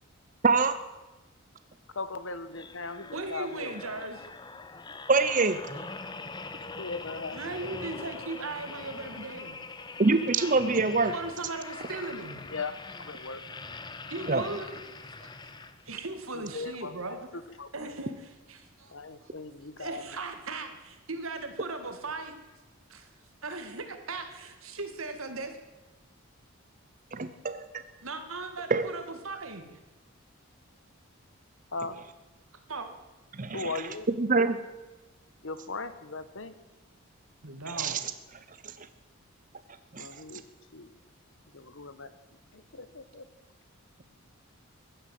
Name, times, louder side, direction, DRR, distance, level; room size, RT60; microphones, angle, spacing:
voice 1, 1.9-3.7 6.8-7.9 12.5-13.4 16.3-17.0 17.3-17.9 18.9-20.0 31.7-32.0 33.5-34.1 35.4-36.5 40.0-40.4 40.7-40.9 41.5-42.2 42.5-43.3, left 3 dB, 65° left, 12 dB, 1.2 m, -38 dB
sound 1, 2.5-16.1 16.6-16.8, left 3 dB, 20° left, 0.7 m, -43 dB
voice 2, 3.1-4.2 6.1-6.2 7.3-9.6 11.1-12.4 14.1-14.8 15.2-15.5 15.9-17.3 17.7-18.9 19.8-22.3 22.9-23.1 23.4-25.6 28.0-29.8 32.7-32.9 37.4-38.1, right 3 dB, 75° right, 7 dB, 2.1 m, -38 dB
voice 3, 5.1-5.6 10.0-11.2 14.3-14.4 27.1-27.8 28.7-28.9 33.3-33.7 34.2-34.6 37.7-38.0 38.8-38.9 39.9-40.1, right 3 dB, 40° right, 11 dB, 0.7 m, -25 dB
15.5 x 11.5 x 7.7 m, 1.1 s
head